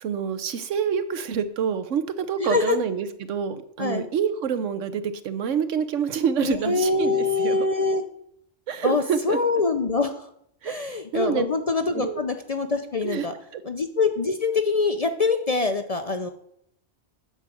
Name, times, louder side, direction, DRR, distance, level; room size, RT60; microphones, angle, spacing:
voice 1, 0.0-7.7 8.7-9.4 10.6-11.4 11.9-12.2 13.0-13.3 13.5-13.6, right 7 dB, 85° right, 11 dB, 1.2 m, -27 dB
voice 2, 2.4-2.8 3.8-4.1 6.4-8.1 8.8-10.3 10.6-13.3 13.6-16.3, left 4 dB, 45° left, 7 dB, 0.5 m, -24 dB
8.9 x 5.0 x 7.7 m, 0.70 s
omnidirectional pair, 1.2 m